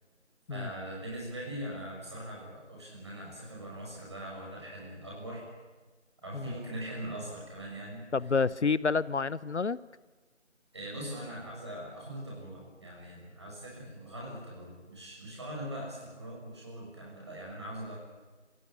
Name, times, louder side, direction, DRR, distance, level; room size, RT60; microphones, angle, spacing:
voice 1, 0.5-5.4 6.2-8.0 10.7-18.0, right 1 dB, 20° right, -3 dB, 6.3 m, -41 dB
voice 2, 8.1-9.8, left 4 dB, 70° left, 20 dB, 0.7 m, -29 dB
25.5 x 16.0 x 9.8 m, 1.3 s
figure-of-eight pair, 175°, 36 cm